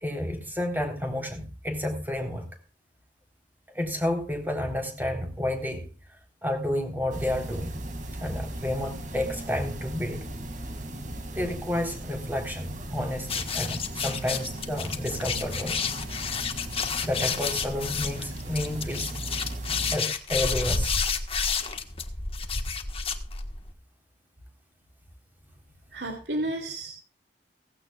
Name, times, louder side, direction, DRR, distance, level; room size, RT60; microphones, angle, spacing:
voice 1, 0.0-2.4 3.7-5.9 6.4-7.8 8.2-10.2 11.3-15.8 17.0-19.1 19.9-21.0, left 1 dB, 10° right, 3 dB, 3.8 m, -30 dB
sound 1, 7.1-20.0, right 1 dB, 45° right, 2.3 m, -37 dB
sound 2, 13.2-23.7, left 5 dB, 35° left, 1.4 m, -30 dB
voice 2, 25.9-26.9, right 1 dB, 70° right, 3 dB, 2.6 m, -31 dB
17.0 x 16.0 x 2.4 m, 0.35 s
head